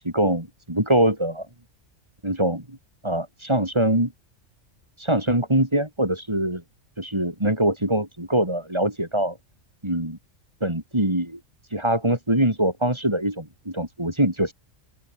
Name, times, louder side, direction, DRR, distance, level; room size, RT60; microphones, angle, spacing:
voice 1, 0.0-1.5 2.2-2.8 3.0-4.1 5.0-6.6 7.0-9.4 9.8-10.2 10.6-11.4 11.7-14.5, right 1 dB, 20° right, 3.8 m, -23 dB
open air
omnidirectional pair, 1.3 m